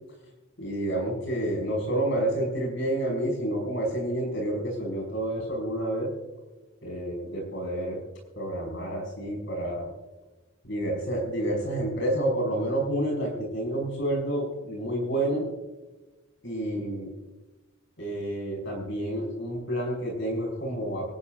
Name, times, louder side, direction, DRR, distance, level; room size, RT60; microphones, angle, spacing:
voice 1, 0.6-6.1 6.8-8.0 8.4-9.9 10.6-15.5 16.4-17.1 18.0-21.1, right 1 dB, 60° left, -1 dB, 5.4 m, -29 dB
24.5 x 13.0 x 2.6 m, 1.1 s
head